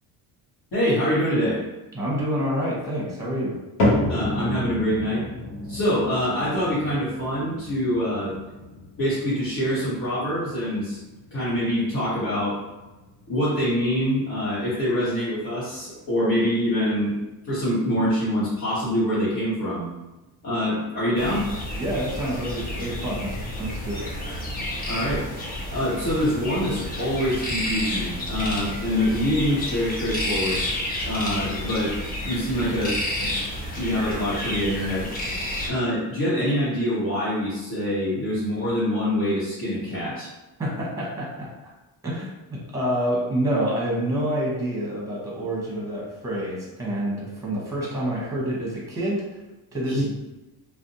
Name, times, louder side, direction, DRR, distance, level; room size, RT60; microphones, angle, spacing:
voice 1, 0.7-1.6 4.1-5.2 5.7-8.3 9.0-11.0 11.3-12.6 13.3-17.1 17.4-19.9 20.4-21.5 24.9-25.3 25.7-30.6 31.0-32.0 32.2-32.9 33.2-33.3 33.8-35.1 35.7-40.3 49.9-50.0, equal, 60° left, -10 dB, 1.1 m, -25 dB
voice 2, 1.9-3.6 21.8-24.1 40.6-41.7 42.0-42.3 42.7-49.2 49.7-50.2, right 1 dB, 10° right, -4 dB, 0.8 m, -27 dB
sound 1, 3.8-20.1 20.4-21.0 21.6-21.7 22.5-22.6, left 1 dB, 85° left, 0.9 m, -32 dB
sound 2, 21.2-35.7, left 1 dB, 20° left, 0.6 m, -30 dB
2.5 x 2.1 x 2.7 m, 1.0 s
cardioid pair, 90°, 41 cm